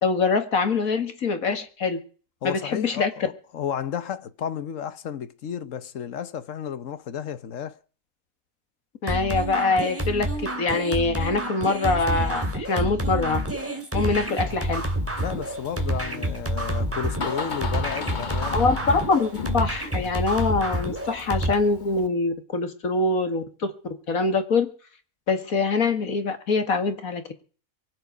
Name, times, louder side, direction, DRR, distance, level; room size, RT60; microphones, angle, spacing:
voice 1, 0.0-2.0 2.4-3.1 9.0-13.4 13.9-14.8 18.5-23.7 24.1-24.7 25.3-27.2, left 4 dB, 85° left, 2.4 m, -24 dB
voice 2, 2.4-7.8 15.2-18.7, left 8 dB, 65° left, 1.3 m, -32 dB
sound 1, 9.1-21.5, right 1 dB, 10° right, 2.5 m, -28 dB
Door, 14.4-22.1, left 4 dB, 35° left, 1.3 m, -37 dB
23.5 x 8.0 x 6.1 m
omnidirectional pair, 1.4 m